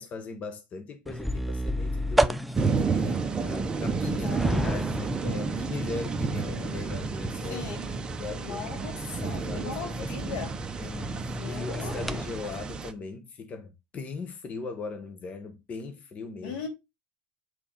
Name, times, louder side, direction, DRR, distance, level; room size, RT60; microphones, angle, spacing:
voice 1, 0.0-2.4 2.7-7.7 8.2-8.7 9.2-10.4 10.8-16.6, left 4 dB, 30° left, 1.3 m, -39 dB
sound 1, 1.1-12.2, equal, ahead, 0.5 m, -33 dB
sound 2, 2.5-12.9, right 4 dB, 20° right, 1.0 m, -31 dB
voice 2, 4.1-4.7 5.0-5.1 7.5-7.9 8.4-10.6 11.4-12.2 16.4-16.7, left 5 dB, 80° left, 3.5 m, -39 dB
8.8 x 4.2 x 5.4 m
supercardioid pair, 130°, 5 cm